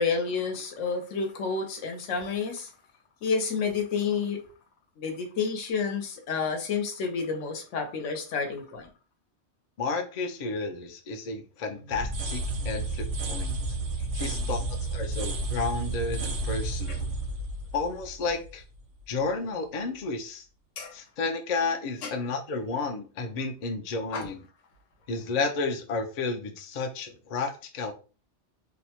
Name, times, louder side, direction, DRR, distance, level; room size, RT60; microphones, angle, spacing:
voice 1, 0.0-2.7 3.2-4.4 5.0-8.9 11.7-12.0 14.2-14.6 16.9-17.0 20.8-20.9 22.0-22.1 24.1-24.3, left 5 dB, 90° left, 4 dB, 1.0 m, -30 dB
voice 2, 9.8-13.5 14.1-17.1 17.7-18.6 19.1-20.4 20.9-24.4 25.1-27.9, left 4 dB, 55° left, 5 dB, 0.4 m, -32 dB
sound 1, 11.9-18.8, right 2 dB, 90° right, 1.0 m, -31 dB
2.7 x 2.1 x 2.8 m, 0.35 s
omnidirectional pair, 1.2 m